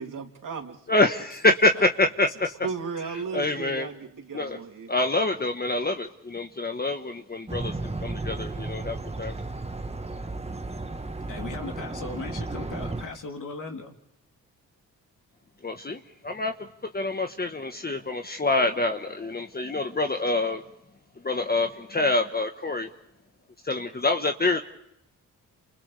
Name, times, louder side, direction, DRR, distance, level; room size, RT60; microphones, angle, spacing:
voice 1, 0.0-0.8 2.6-4.9, right 5 dB, 60° right, 2 dB, 3.1 m, -35 dB
voice 2, 0.9-2.5 3.1-3.9 4.3-4.6 4.9-9.3 15.6-16.5 16.9-20.6 21.2-22.9 23.6-24.6, left 2 dB, 25° left, 5 dB, 1.4 m, -26 dB
sound 1, 7.5-13.0, right 2 dB, 15° right, 1.5 m, -34 dB
voice 3, 11.3-14.0, left 3 dB, 55° left, 2 dB, 3.6 m, -37 dB
29.5 x 27.5 x 3.5 m, 0.82 s
cardioid pair, 70°, 36 cm